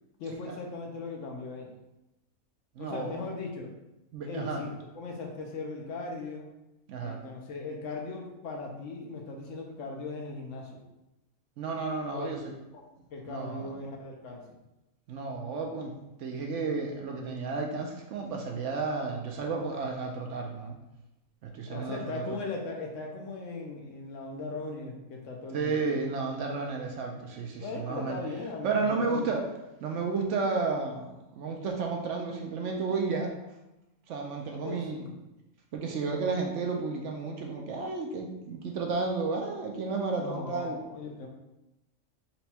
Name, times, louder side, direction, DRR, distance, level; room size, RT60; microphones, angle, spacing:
voice 1, 0.2-1.8 2.8-3.7 4.2-6.5 7.0-10.8 12.1-12.8 13.1-14.6 21.7-25.9 27.6-29.4 34.5-35.1 40.1-41.3, left 3 dB, 65° left, 1 dB, 1.0 m, -39 dB
voice 2, 2.8-3.3 4.1-4.6 6.9-7.2 11.6-12.5 13.3-13.7 15.1-15.9 16.2-20.8 21.4-22.4 25.5-28.2 28.6-29.5 29.8-33.3 34.1-35.0 35.7-40.8, right 4 dB, 70° right, 2 dB, 0.8 m, -32 dB
4.2 x 2.2 x 4.2 m, 0.95 s
omnidirectional pair, 1.4 m